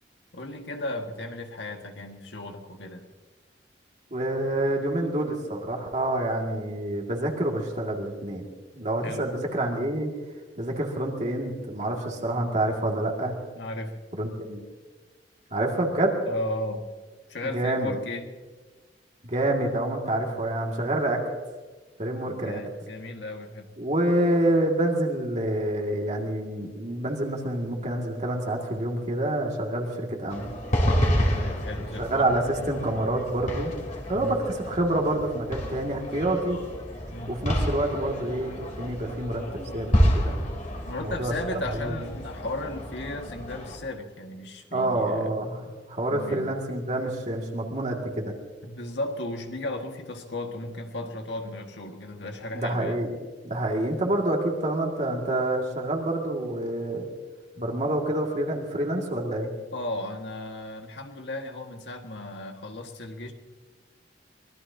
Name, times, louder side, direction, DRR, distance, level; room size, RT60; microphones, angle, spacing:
voice 1, 0.3-3.1 9.0-9.3 13.5-14.1 14.3-14.5 16.2-16.9 17.3-18.3 22.3-23.7 31.3-32.3 34.1-34.4 37.1-37.4 40.9-45.3 46.1-46.5 48.6-53.0 59.7-63.3, left 2 dB, 75° left, 3 dB, 1.8 m, -35 dB
voice 2, 4.1-8.4 8.7-10.1 10.6-13.3 14.1-14.6 15.5-16.1 17.5-17.9 19.2-21.2 22.0-22.6 23.8-30.5 32.0-33.7 34.1-36.6 37.3-39.4 39.7-39.9 40.1-40.4 41.0-41.9 44.7-45.6 45.9-48.3 52.5-53.1 53.4-57.1 57.6-59.5, right 1 dB, 40° right, 0 dB, 2.2 m, -27 dB
sound 1, 30.3-43.8, equal, 45° left, 3.3 m, -29 dB
24.0 x 19.0 x 2.8 m, 1.3 s
head